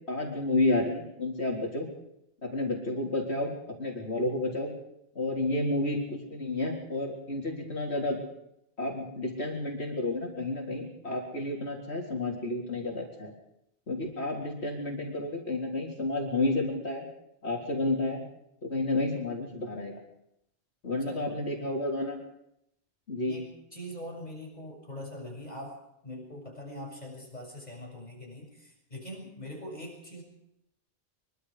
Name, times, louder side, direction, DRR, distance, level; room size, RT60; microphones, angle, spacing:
voice 1, 0.0-1.9 2.4-3.5 3.8-4.7 5.2-8.2 8.8-13.3 13.9-17.0 17.4-18.2 18.6-20.0 20.8-22.2 23.1-23.4, left 2 dB, 70° left, -1 dB, 4.0 m, -31 dB
voice 2, 23.3-25.7 26.0-30.2, equal, 40° left, 0 dB, 7.0 m, -42 dB
24.0 x 23.5 x 5.0 m, 0.79 s
omnidirectional pair, 1.1 m